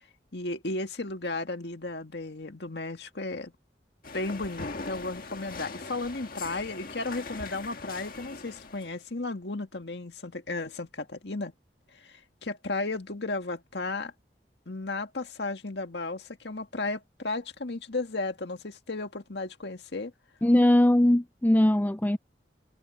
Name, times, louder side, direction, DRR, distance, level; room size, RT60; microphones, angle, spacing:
voice 1, 0.3-3.5 4.1-11.5 11.9-14.1 14.7-20.1, left 2 dB, 70° left, 1.9 m, -34 dB
sound 1, 4.0-9.0, left 3 dB, 55° left, 1.7 m, -41 dB
voice 2, 20.4-22.2, left 1 dB, 10° left, 0.4 m, -21 dB
head